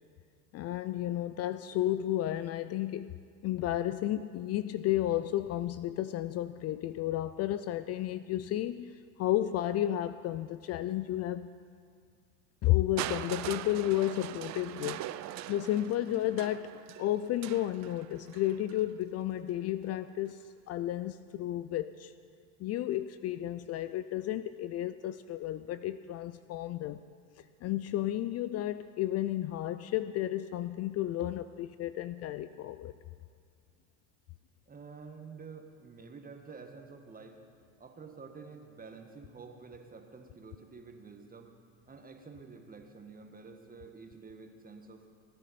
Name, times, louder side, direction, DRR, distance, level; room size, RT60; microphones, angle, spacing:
voice 1, 0.5-3.2 3.4-11.6 12.6-15.1 15.5-16.7 17.0-22.1 22.6-27.0 27.6-32.9, left 13 dB, 45° left, 13 dB, 0.4 m, -32 dB
Crushing, 13.0-18.9 19.8-19.9, right 14 dB, 50° right, 0.5 m, -41 dB
voice 2, 34.7-37.4 37.8-41.5 41.9-45.0, right 4 dB, 25° right, 5 dB, 1.5 m, -49 dB
18.0 x 10.0 x 4.3 m, 2.2 s
hypercardioid pair, 75°, 37 cm